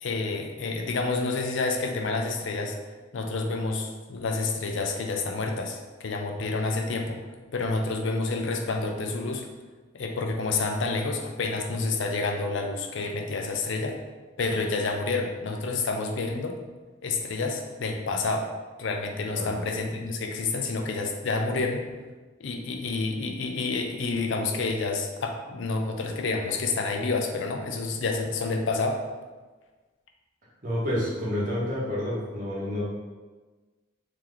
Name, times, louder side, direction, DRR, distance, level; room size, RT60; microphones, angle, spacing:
voice 1, 0.0-2.8 3.1-7.2 7.5-9.5 9.9-14.0 14.4-16.5 17.0-18.5 18.8-21.8 22.4-29.0, left 3 dB, 80° left, 3 dB, 0.5 m, -29 dB
voice 2, 30.6-32.8, left 1 dB, 45° right, -6 dB, 1.0 m, -29 dB
3.2 x 2.8 x 3.8 m, 1.3 s
head